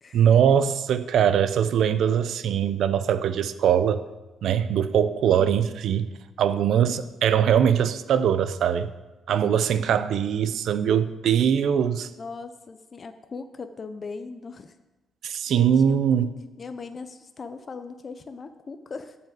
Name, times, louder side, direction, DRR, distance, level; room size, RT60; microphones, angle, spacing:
voice 1, 0.1-4.0 4.4-6.1 6.4-8.9 9.3-12.1 15.2-16.3, right 8 dB, 70° right, 12 dB, 0.7 m, -22 dB
voice 2, 5.4-5.8 12.2-14.8 15.2-16.3 16.6-19.2, left 4 dB, 35° left, 9 dB, 0.6 m, -39 dB
11.0 x 5.7 x 7.9 m, 1.1 s
cardioid pair, 130°, 0 cm